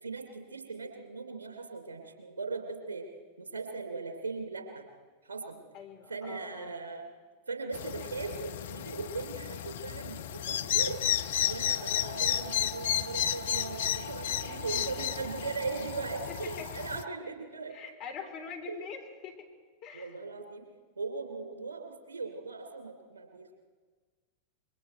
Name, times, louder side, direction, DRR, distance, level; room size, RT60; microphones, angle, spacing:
voice 1, 0.0-3.1 3.4-4.9 5.2-5.6 6.1-7.1 7.5-11.0 11.5-17.7 18.6-18.8 19.9-20.6 21.0-23.5, right 4 dB, 70° right, 5 dB, 3.1 m, -39 dB
voice 2, 5.7-6.8 14.4-14.7 16.3-16.7 17.7-19.5 19.8-20.1, left 6 dB, 40° left, 3 dB, 3.6 m, -44 dB
sound 1, 7.7-17.0, left 11 dB, 60° left, 0.7 m, -33 dB
sound 2, 9.8-17.5, right 3 dB, 45° right, 2.1 m, -46 dB
27.5 x 22.5 x 4.6 m, 1.5 s
figure-of-eight pair, 90°, 0 cm